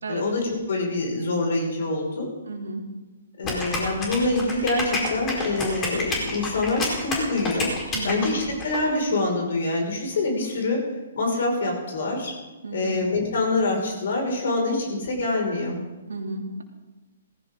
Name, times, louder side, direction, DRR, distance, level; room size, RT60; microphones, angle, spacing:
voice 1, 0.1-2.3 3.4-7.7 8.0-10.8 11.1-12.3 12.7-15.8, left 2 dB, 60° left, 1 dB, 5.9 m, -25 dB
voice 2, 2.5-2.8 7.9-8.3 12.6-13.0 16.1-16.6, right 2 dB, 75° right, 2 dB, 3.0 m, -32 dB
sound 1, 3.4-8.8, left 2 dB, 20° left, 4.6 m, -29 dB
18.5 x 15.5 x 3.9 m, 1.1 s
figure-of-eight pair, 130°, 0 cm